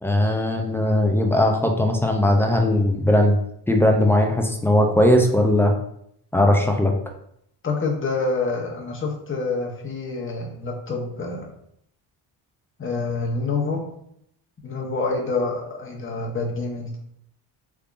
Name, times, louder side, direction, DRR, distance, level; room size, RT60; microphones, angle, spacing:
voice 1, 0.0-3.4 3.7-5.7 6.3-6.9, left 1 dB, 5° left, 2 dB, 0.3 m, -19 dB
voice 2, 7.6-11.5 12.8-13.8 14.6-17.0, left 3 dB, 25° left, 0 dB, 0.9 m, -27 dB
3.5 x 3.4 x 2.4 m, 0.72 s
cardioid pair, 105°, 47 cm